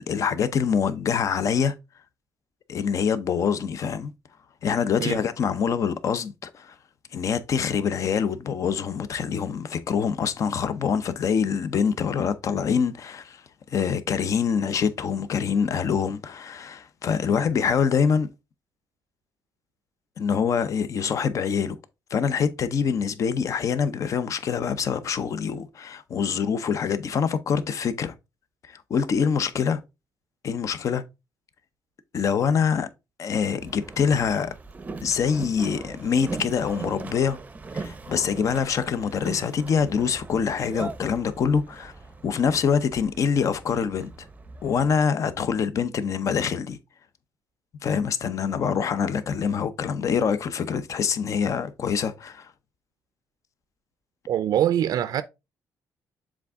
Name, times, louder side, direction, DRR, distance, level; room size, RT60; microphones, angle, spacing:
voice 1, 0.0-1.7 2.7-4.1 4.6-6.7 7.1-13.4 13.7-18.3 20.2-21.8 22.1-28.1 28.7-29.8 30.4-31.0 32.1-32.9 33.2-34.5 35.0-37.4 37.7-41.9 42.2-44.1 44.6-46.8 47.8-52.5, left 6 dB, 50° left, 0.7 m, -25 dB
Boat Water vehicle, 33.6-45.0, right 3 dB, 20° right, 0.6 m, -39 dB
voice 2, 54.3-55.2, right 11 dB, 65° right, 0.4 m, -23 dB
7.3 x 3.6 x 3.5 m
cardioid pair, 135°, 7 cm